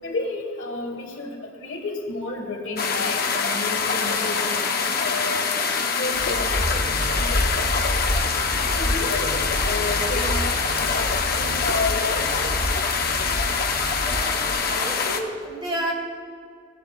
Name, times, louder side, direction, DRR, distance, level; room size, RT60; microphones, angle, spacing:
voice 1, 0.0-5.5 5.9-7.6 8.8-10.4 10.7-12.5, left 2 dB, 65° left, 2 dB, 1.5 m, -31 dB
sound 1, 2.8-15.2, left 5 dB, 45° left, 0.8 m, -24 dB
sound 2, 6.1-14.5, equal, 5° right, 2.7 m, -29 dB
voice 2, 14.0-15.9, right 1 dB, 25° right, -4 dB, 3.2 m, -31 dB
17.5 x 11.5 x 2.4 m, 2.1 s
head